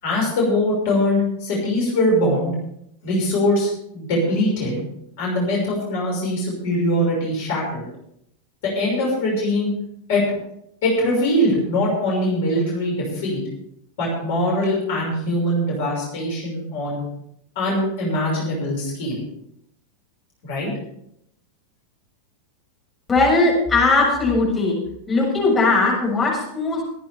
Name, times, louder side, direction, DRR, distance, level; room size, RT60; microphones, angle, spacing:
voice 1, 0.0-2.5 3.0-4.8 5.2-7.9 8.6-9.7 10.1-10.2 10.8-13.4 14.0-17.0 17.6-19.2 20.4-20.7, left 1 dB, 50° left, -2 dB, 5.8 m, -22 dB
voice 2, 23.1-24.7 25.1-26.8, left 3 dB, 15° left, -4 dB, 7.1 m, -19 dB
23.0 x 10.0 x 3.5 m, 0.76 s
figure-of-eight pair, 90°, 0 cm